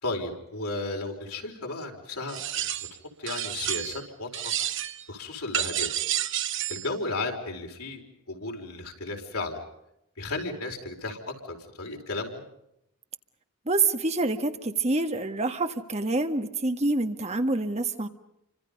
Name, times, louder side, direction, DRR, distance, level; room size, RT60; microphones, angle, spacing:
voice 1, 0.0-2.8 3.2-4.5 5.1-5.9 6.7-8.0 8.3-9.6 10.2-11.2 11.5-12.4, left 2 dB, 85° left, 2 dB, 4.9 m, -34 dB
sound 1, 2.3-3.0 3.3-4.1 4.3-5.0 5.5-6.9, right 11 dB, 55° right, 1.2 m, -30 dB
voice 2, 13.7-18.1, right 3 dB, 30° right, 7 dB, 1.5 m, -27 dB
29.5 x 25.5 x 5.4 m, 0.81 s
head